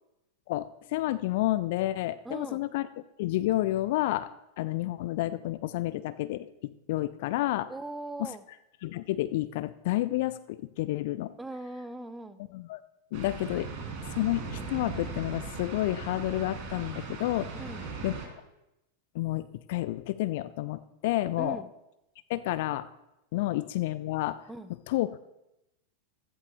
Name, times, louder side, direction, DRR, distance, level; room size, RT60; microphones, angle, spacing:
voice 1, 0.5-2.9 3.2-4.3 4.6-7.7 8.2-8.3 8.8-11.3 12.5-12.8 13.1-13.7 14.1-17.5 18.0-18.1 19.1-21.6 22.3-22.9 23.3-24.4 24.9-25.2, left 16 dB, 50° left, 14 dB, 0.4 m, -30 dB
voice 2, 2.2-2.6 7.7-8.4 11.4-12.4 17.5-17.9 21.4-21.7 24.5-24.7, right 2 dB, 10° right, 12 dB, 0.6 m, -40 dB
sound 1, 13.1-18.3, right 4 dB, 35° right, 3.0 m, -38 dB
15.0 x 14.0 x 2.3 m, 0.90 s
figure-of-eight pair, 90°, 0 cm